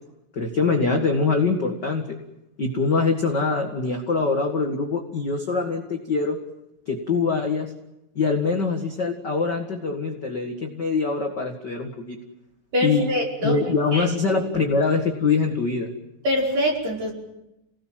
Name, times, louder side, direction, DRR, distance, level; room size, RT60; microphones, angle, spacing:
voice 1, 0.3-2.2 2.6-6.4 6.9-7.7 8.1-12.2 12.8-13.1 13.4-15.9, left 4 dB, 45° left, 2 dB, 1.5 m, -23 dB
voice 2, 12.7-13.6 13.9-14.4 16.2-17.1, left 1 dB, 40° right, -2 dB, 6.5 m, -24 dB
28.5 x 19.0 x 7.7 m, 0.89 s
omnidirectional pair, 4.9 m